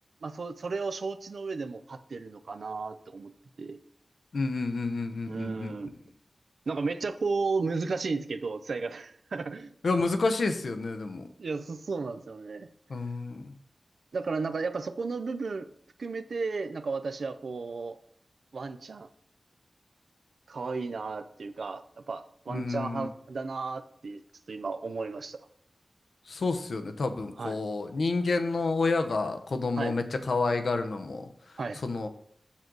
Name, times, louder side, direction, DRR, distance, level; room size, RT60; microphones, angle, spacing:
voice 1, 0.2-3.3 3.6-3.8 5.3-5.9 6.7-9.7 11.4-12.7 14.1-15.7 16.0-18.0 18.5-19.1 20.5-24.2 24.5-25.4 27.4-27.6 29.8-29.9 31.6-31.8, right 4 dB, 80° right, 10 dB, 0.5 m, -34 dB
voice 2, 4.3-5.7 9.8-11.3 12.9-13.5 22.5-23.1 26.3-32.1, left 3 dB, 80° left, 7 dB, 0.7 m, -29 dB
7.3 x 6.1 x 3.9 m, 0.65 s
wide cardioid pair, 70°, 0 cm